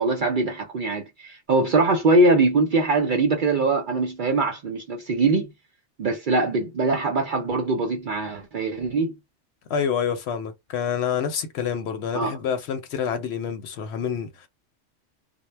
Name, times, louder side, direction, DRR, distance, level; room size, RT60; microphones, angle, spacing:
voice 1, 0.0-5.5 6.0-9.1 12.1-12.3, right 3 dB, 60° right, 0.6 m, -22 dB
voice 2, 9.7-14.5, left 7 dB, 65° left, 0.8 m, -27 dB
2.1 x 2.1 x 3.2 m
omnidirectional pair, 1.3 m